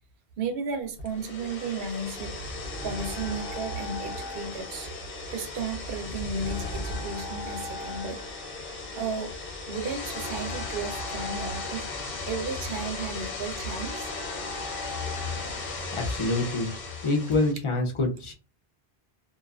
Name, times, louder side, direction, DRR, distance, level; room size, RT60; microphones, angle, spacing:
voice 1, 0.4-2.4 2.8-4.9 5.3-8.2 8.9-9.3 9.6-11.8 12.3-14.1 17.0-17.2, right 4 dB, 70° right, 0.7 m, -34 dB
sound 1, 1.0-17.5, left 3 dB, 65° left, 0.9 m, -36 dB
sound 2, 2.6-15.7, left 1 dB, 5° right, 1.1 m, -42 dB
voice 2, 15.9-16.7 17.0-18.3, left 2 dB, 35° left, 0.6 m, -26 dB
2.5 x 2.3 x 2.3 m
omnidirectional pair, 1.1 m